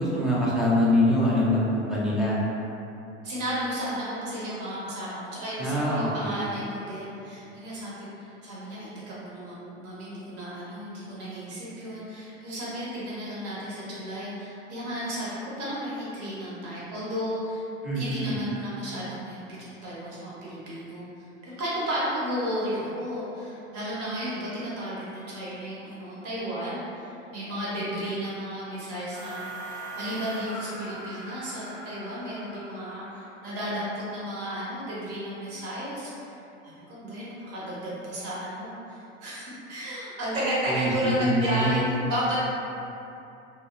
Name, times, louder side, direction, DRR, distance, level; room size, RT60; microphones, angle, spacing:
voice 1, 0.0-2.4 5.6-6.5 17.8-18.4 40.7-40.9 41.2-41.8, left 1 dB, ahead, -9 dB, 0.4 m, -24 dB
voice 2, 3.2-17.6 17.9-36.3 36.6-42.4, equal, 40° right, -8 dB, 1.0 m, -33 dB
sound 1, 29.1-33.6, right 2 dB, 20° left, 0.8 m, -41 dB
2.6 x 2.0 x 2.4 m, 2.8 s
hypercardioid pair, 85°, 36 cm